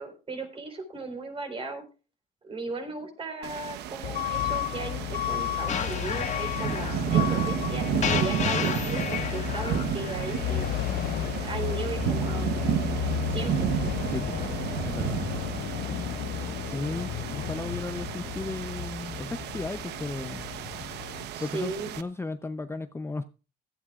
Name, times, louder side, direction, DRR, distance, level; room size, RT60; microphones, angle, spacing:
voice 1, 0.0-1.8 2.4-10.7 11.3-12.8 13.3-13.7 21.3-21.9, right 3 dB, 35° right, 4.7 m, -36 dB
sound 1, 3.4-22.0, right 9 dB, 80° right, 1.0 m, -32 dB
Truck / Alarm, 4.0-21.3, left 12 dB, 60° left, 0.5 m, -33 dB
sound 2, 5.7-10.7, left 7 dB, 45° left, 1.6 m, -33 dB
voice 2, 14.8-15.2 16.4-20.5 21.4-23.2, left 3 dB, 15° left, 0.7 m, -35 dB
17.0 x 13.0 x 2.5 m
cardioid pair, 110°, 17 cm